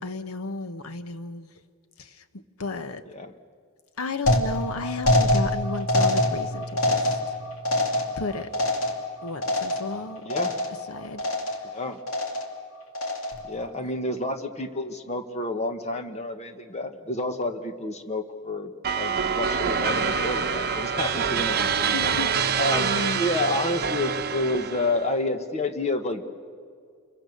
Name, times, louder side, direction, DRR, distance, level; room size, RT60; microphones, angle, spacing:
voice 1, 0.0-1.5 2.6-3.0 4.0-7.0 8.2-8.5 9.2-10.2 10.9-11.2 21.9-22.4 22.7-23.2, left 3 dB, 85° left, 11 dB, 1.1 m, -33 dB
sound 1, 4.3-10.0 10.3-10.9 11.2-11.7 12.1-12.6 13.0-13.5, left 1 dB, 70° left, 2.7 m, -25 dB
voice 2, 10.2-10.6 11.6-12.0 13.4-18.7 19.0-22.1 22.6-26.2, left 2 dB, 30° left, 8 dB, 1.4 m, -29 dB
sound 2, 18.8-25.1, right 6 dB, 45° right, 1.0 m, -26 dB
28.5 x 22.5 x 6.6 m, 2.1 s
head